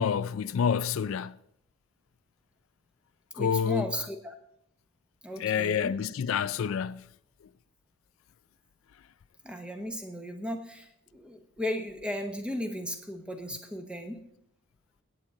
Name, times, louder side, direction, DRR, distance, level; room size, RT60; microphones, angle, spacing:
voice 1, 0.0-1.3 3.3-3.9 5.4-7.0, left 7 dB, 70° left, 0.4 m, -28 dB
voice 2, 3.4-4.3 5.2-5.9 9.4-14.2, equal, 5° right, 1.0 m, -36 dB
16.0 x 8.5 x 3.8 m
head